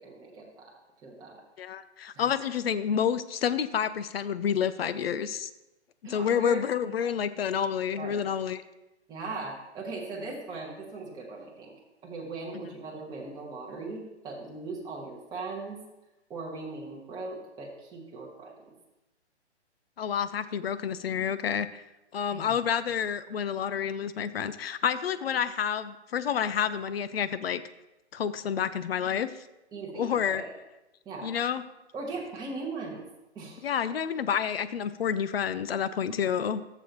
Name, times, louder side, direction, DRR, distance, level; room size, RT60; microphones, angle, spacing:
voice 1, 0.0-1.4 2.1-2.3 6.0-6.6 7.9-8.2 9.1-11.7 12.0-15.8 16.3-18.7 22.3-22.6 29.7-30.5 31.0-31.3 31.9-33.1 33.3-33.7, right 3 dB, 10° right, -4 dB, 1.4 m, -39 dB
voice 2, 1.6-5.5 6.1-8.6 20.0-21.8 22.1-27.6 28.1-29.3 29.9-30.4 31.2-31.6 33.6-36.6, left 8 dB, 60° left, 13 dB, 0.7 m, -29 dB
15.0 x 7.0 x 3.0 m, 0.96 s
figure-of-eight pair, 135°, 34 cm